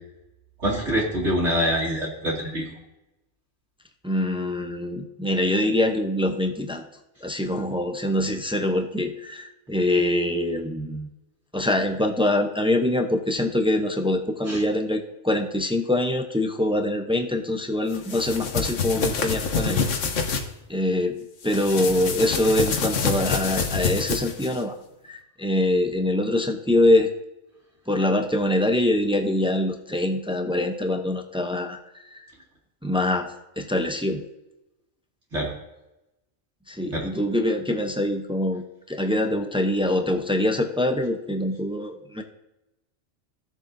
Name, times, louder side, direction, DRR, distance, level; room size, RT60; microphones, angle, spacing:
voice 1, 0.6-2.6 14.5-14.6 35.3-35.5 36.9-37.1, equal, 65° right, -5 dB, 2.7 m, -25 dB
voice 2, 4.0-6.8 7.2-11.1 11.5-19.8 20.7-21.2 21.4-24.8 25.0-27.1 27.9-31.8 32.1-32.3 32.8-33.3 33.6-34.2 36.7-42.2, left 1 dB, 5° right, 4 dB, 0.4 m, -24 dB
sound 1, 17.9-20.4 21.4-24.6, left 5 dB, 80° left, 1.3 m, -26 dB
16.0 x 7.2 x 2.6 m, 0.93 s
omnidirectional pair, 1.3 m